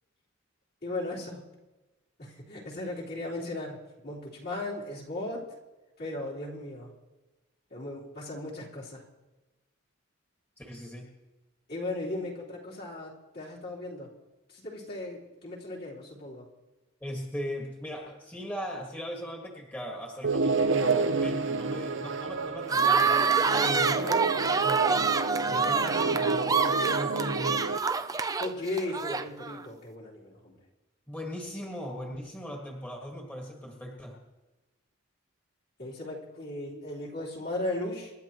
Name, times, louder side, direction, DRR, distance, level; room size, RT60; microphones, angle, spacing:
voice 1, 0.8-1.4 2.2-5.5 6.0-6.9 7.7-9.0 11.7-14.1 14.5-16.5 23.9-24.3 28.4-30.6 35.8-38.1, left 2 dB, 50° left, -5 dB, 3.6 m, -37 dB
voice 2, 10.6-11.1 17.0-23.2 23.5-25.1 25.5-27.8 31.1-34.2, equal, 10° left, -1 dB, 1.8 m, -38 dB
sound 1, 20.2-27.8, right 4 dB, 65° right, 0.7 m, -29 dB
sound 2, 22.7-29.6, right 5 dB, 15° right, 0.4 m, -27 dB
27.0 x 12.0 x 3.0 m, 1.1 s
head